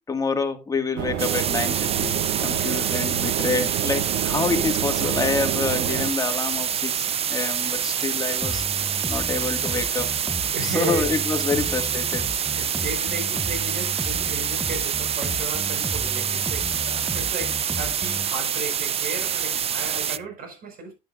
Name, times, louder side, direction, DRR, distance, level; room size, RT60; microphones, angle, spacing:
voice 1, 0.1-2.2 2.4-10.1 10.6-12.3, left 4 dB, 20° left, 1.9 m, -27 dB
sound 1, 1.0-6.1, right 12 dB, 90° right, 0.7 m, -29 dB
sound 2, 1.2-20.2, right 8 dB, 35° right, 0.5 m, -26 dB
voice 2, 2.5-3.2 5.1-5.2 10.5-11.1 11.6-11.7 12.4-20.9, right 3 dB, 60° right, 5.2 m, -35 dB
Bass guitar, 8.4-18.3, right 1 dB, 5° right, 0.8 m, -34 dB
10.5 x 9.1 x 2.5 m
cardioid pair, 110°, 17 cm